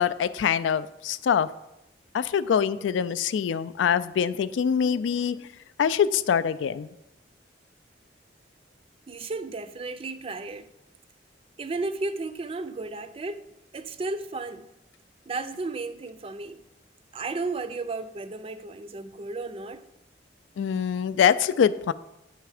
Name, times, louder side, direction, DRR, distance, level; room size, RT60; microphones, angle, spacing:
voice 1, 0.0-1.5 2.1-5.5 5.8-6.9 20.6-21.9, left 7 dB, 90° left, 0.3 m, -24 dB
voice 2, 9.1-10.7 11.6-13.4 13.7-14.7 15.3-16.6 17.1-19.9, right 3 dB, 30° right, 0.4 m, -33 dB
8.9 x 3.4 x 4.9 m
head